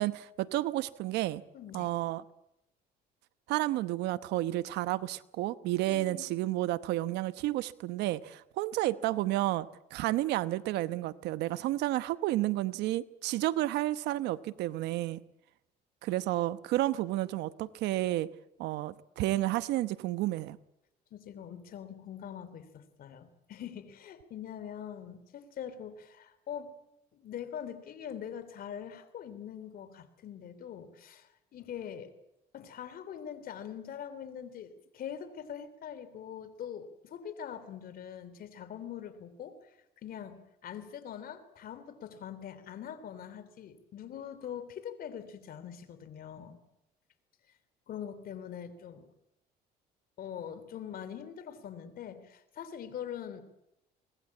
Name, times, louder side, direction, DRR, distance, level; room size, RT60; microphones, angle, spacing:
voice 1, 0.0-1.4 1.7-2.2 3.5-15.2 16.0-18.3 18.6-20.6, right 16 dB, 85° right, 1.0 m, -31 dB
voice 2, 1.5-1.9 5.9-6.3 21.1-26.7 27.1-32.1 32.5-39.6 40.0-46.6 47.9-49.1 50.2-53.4, left 9 dB, 60° left, 3.3 m, -43 dB
24.0 x 20.5 x 8.6 m
cardioid pair, 110°, 17 cm